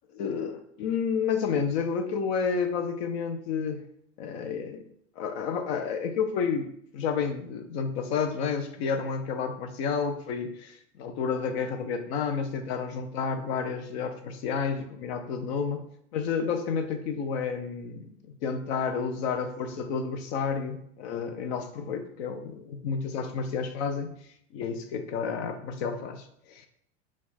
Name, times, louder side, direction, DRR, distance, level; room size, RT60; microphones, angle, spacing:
voice 1, 0.2-3.8 4.2-4.8 5.2-6.7 6.9-15.9 16.1-24.1 24.5-26.7, left 6 dB, 60° left, 7 dB, 0.7 m, -30 dB
4.2 x 2.4 x 4.2 m, 0.69 s
hypercardioid pair, 85°, 35 cm